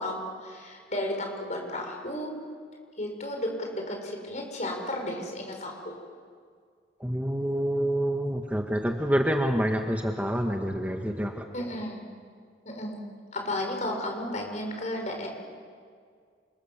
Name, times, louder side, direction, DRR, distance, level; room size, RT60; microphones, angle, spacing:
voice 1, 0.0-2.3 3.0-5.9 11.5-12.0 12.6-13.0 13.3-15.3, left 1 dB, 40° left, 2 dB, 6.3 m, -33 dB
voice 2, 7.0-11.4, equal, 10° right, 2 dB, 1.6 m, -27 dB
28.5 x 27.0 x 7.4 m, 2.1 s
head